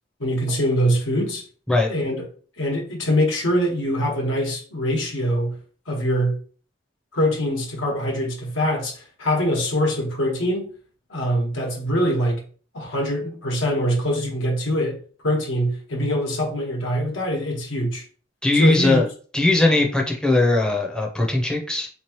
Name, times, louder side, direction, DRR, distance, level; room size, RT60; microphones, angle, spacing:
voice 1, 0.2-1.4 1.9-2.2 2.6-5.5 5.9-6.4 7.1-10.7 11.1-12.4 12.7-15.0 15.2-18.0 18.5-19.0, equal, 85° left, 1.3 m, -23 dB
voice 2, 18.4-19.1 19.3-21.9, left 2 dB, 5° left, 0.6 m, -19 dB
3.6 x 3.0 x 3.0 m
head